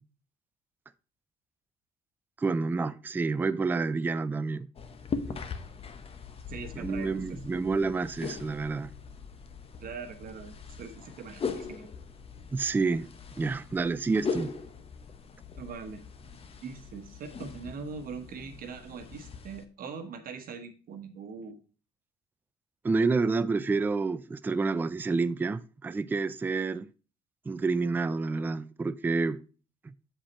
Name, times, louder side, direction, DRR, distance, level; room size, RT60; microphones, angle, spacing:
voice 1, 2.4-4.7 5.3-5.4 6.8-8.9 12.5-13.1 13.4-14.5 22.8-26.9 27.5-29.4 29.8-29.9, right 4 dB, 10° right, 0.3 m, -29 dB
sound 1, 4.8-19.7, left 5 dB, 35° left, 0.8 m, -40 dB
voice 2, 6.5-7.4 9.8-11.9 15.6-16.0 16.3-21.6, right 5 dB, 60° right, 1.1 m, -42 dB
7.4 x 5.1 x 4.2 m
cardioid pair, 110°, 17 cm